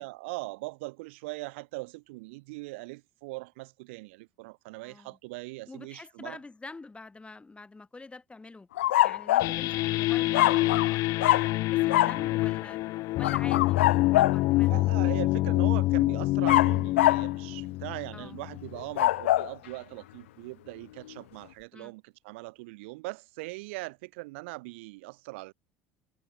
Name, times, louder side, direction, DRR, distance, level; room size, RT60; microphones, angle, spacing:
voice 1, 0.0-6.4 14.7-25.5, right 24 dB, 80° right, 6.2 m, -40 dB
voice 2, 4.8-5.2 5.7-8.7 9.0-12.8 13.2-14.8 18.1-18.5 21.7-21.9, left 3 dB, 15° left, 7.7 m, -46 dB
sound 1, 8.8-9.6 10.3-10.9 11.2-11.5 11.9-12.2 13.2-14.4 16.5-17.3 18.8-19.5, left 15 dB, 85° left, 0.7 m, -24 dB
sound 2, 9.4-18.8, left 18 dB, 65° left, 1.0 m, -26 dB
hypercardioid pair, 75°, 6 cm